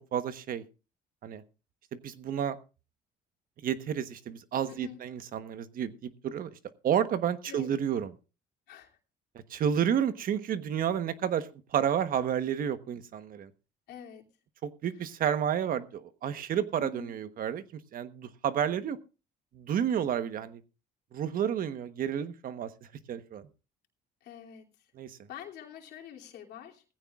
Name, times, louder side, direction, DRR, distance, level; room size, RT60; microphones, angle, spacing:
voice 1, 0.1-0.6 1.2-1.4 1.9-2.6 3.6-6.5 6.8-8.1 9.5-11.5 11.7-13.5 14.6-17.6 17.9-19.0 19.5-20.6 21.1-22.7 23.1-23.5 25.0-25.2, right 9 dB, 55° right, 11 dB, 1.2 m, -30 dB
voice 2, 4.7-5.0 7.5-7.7 8.7-8.9 13.9-14.2 16.8-17.1 24.2-24.7 25.3-26.8, left 9 dB, 75° left, 1 dB, 3.0 m, -45 dB
18.0 x 15.5 x 2.5 m, 0.33 s
cardioid pair, 110°, 17 cm